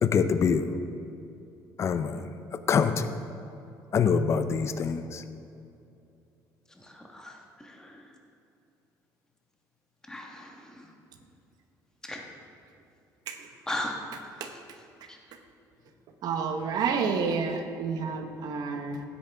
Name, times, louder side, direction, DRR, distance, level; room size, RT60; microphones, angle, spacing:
voice 1, 0.0-0.7 1.8-3.1 3.9-5.2, left 6 dB, 40° left, 10 dB, 0.6 m, -25 dB
voice 2, 6.8-8.0 10.1-10.9 12.0-12.2 13.7-14.0 15.1-15.2, left 1 dB, 10° left, 1 dB, 1.3 m, -37 dB
voice 3, 16.2-19.0, right 5 dB, 60° right, 6 dB, 1.0 m, -29 dB
15.5 x 8.5 x 3.5 m, 2.6 s
cardioid pair, 135°, 8 cm